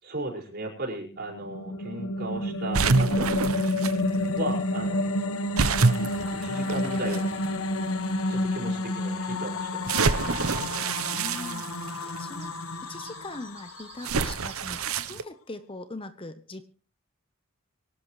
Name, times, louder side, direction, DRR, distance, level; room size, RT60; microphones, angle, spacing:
voice 1, 0.0-3.4 4.4-6.0 6.4-7.3 8.3-10.1, right 2 dB, 50° right, -3 dB, 5.4 m, -36 dB
sound 1, 1.1-14.5, left 1 dB, 85° left, 1.2 m, -30 dB
sound 2, 2.7-3.9 5.6-7.2 8.0-8.1 9.9-12.2 14.0-15.2, right 4 dB, 85° right, 0.9 m, -26 dB
sound 3, 6.9-15.1, right 6 dB, 30° right, 3.2 m, -54 dB
voice 2, 11.0-12.5 12.9-16.6, left 2 dB, 25° left, 10 dB, 0.9 m, -41 dB
24.5 x 12.0 x 3.2 m, 0.37 s
head